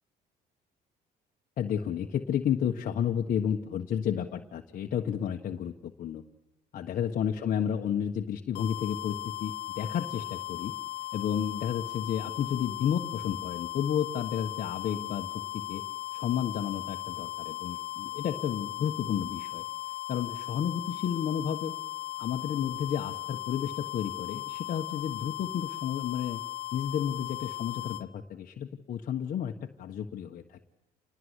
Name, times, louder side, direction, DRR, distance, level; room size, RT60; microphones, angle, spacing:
voice 1, 1.6-6.2 6.7-10.7 11.1-15.8 16.1-19.6 20.1-21.7 22.2-26.4 26.7-30.6, left 9 dB, 55° left, 2 dB, 1.4 m, -32 dB
sound 1, 8.5-28.0, left 17 dB, 85° left, 1.4 m, -37 dB
28.5 x 20.0 x 8.2 m, 0.90 s
cardioid pair, 110°, 17 cm